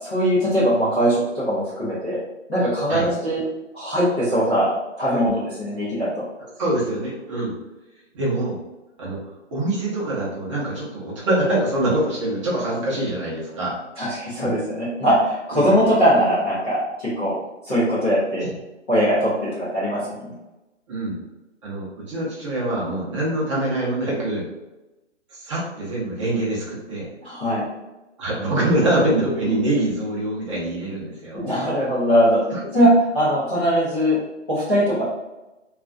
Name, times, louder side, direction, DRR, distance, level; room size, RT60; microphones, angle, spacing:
voice 1, 0.0-2.2 2.5-3.4 3.7-4.7 5.0-6.1 14.0-17.3 17.7-18.4 18.9-20.3 27.2-27.6 31.3-32.4 32.7-32.9 33.1-34.2 34.5-35.0, equal, 10° left, -15 dB, 0.5 m, -21 dB
voice 2, 6.6-7.5 8.1-8.6 9.0-9.2 9.5-13.7 15.5-15.7 18.4-18.5 20.9-21.2 21.6-24.5 25.4-27.1 28.2-31.4 32.5-32.6, right 1 dB, 25° right, -5 dB, 0.7 m, -24 dB
3.0 x 2.4 x 2.5 m, 1.0 s
figure-of-eight pair, 140°, 36 cm